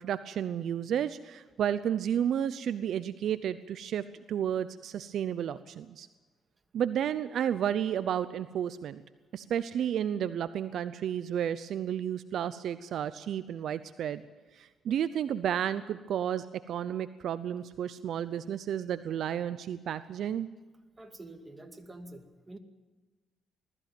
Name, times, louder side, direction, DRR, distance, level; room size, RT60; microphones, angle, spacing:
voice 1, 0.0-6.1 6.7-9.0 9.3-14.2 14.5-20.5, right 9 dB, 70° right, 13 dB, 0.7 m, -32 dB
voice 2, 21.0-22.6, right 2 dB, 20° right, 5 dB, 2.4 m, -47 dB
20.5 x 14.5 x 9.2 m, 1.2 s
cardioid pair, 90°, 0 cm